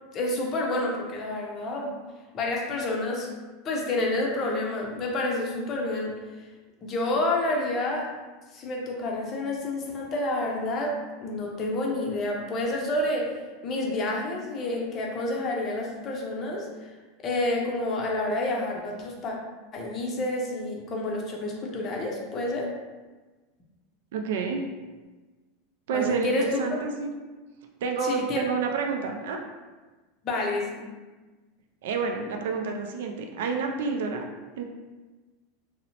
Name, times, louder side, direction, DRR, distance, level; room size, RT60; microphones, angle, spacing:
voice 1, 0.1-2.0 2.3-3.3 3.6-6.2 6.8-8.1 8.5-16.9 17.2-19.4 19.7-22.7 25.9-26.6 28.0-28.4 30.2-30.8, left 2 dB, 30° left, -1 dB, 0.5 m, -29 dB
voice 2, 24.1-24.6 25.9-27.1 27.8-29.4 31.8-34.3 34.6-34.7, right 5 dB, 80° right, 3 dB, 0.3 m, -29 dB
2.7 x 2.0 x 2.8 m, 1.3 s
supercardioid pair, 150°, 0 cm